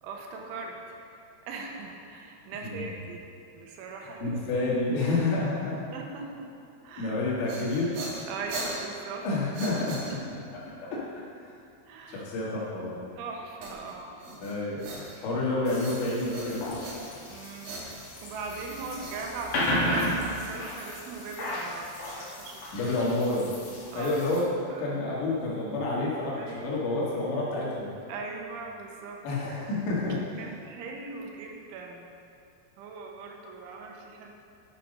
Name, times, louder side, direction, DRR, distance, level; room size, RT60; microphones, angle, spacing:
voice 1, 0.0-1.0 1.4-3.3 3.5-4.3 5.6-6.5 6.8-7.2 8.3-9.3 9.8-10.4 11.9-12.3 13.2-14.3 17.3-17.9 18.2-22.9 23.9-24.1 24.7-24.9 26.4-27.0 28.1-29.2 30.4-32.1 32.8-34.3, right 4 dB, 85° right, 1 dB, 3.4 m, -40 dB
voice 2, 4.0-5.9 7.0-8.0 9.2-10.0 10.8-11.0 11.3-11.5 12.1-13.0 14.4-14.9 15.2-16.8 22.7-23.5 24.0-24.4 24.8-27.9 29.2-30.5, left 2 dB, 70° left, -6 dB, 4.1 m, -29 dB
sound 1, 7.4-10.6 13.6-15.4 15.8-17.3 17.6-19.9, right 2 dB, 60° right, 3.0 m, -40 dB
sound 2, 15.7-24.4, left 1 dB, 55° left, 2.5 m, -34 dB
11.0 x 7.4 x 5.2 m, 2.5 s
omnidirectional pair, 5.5 m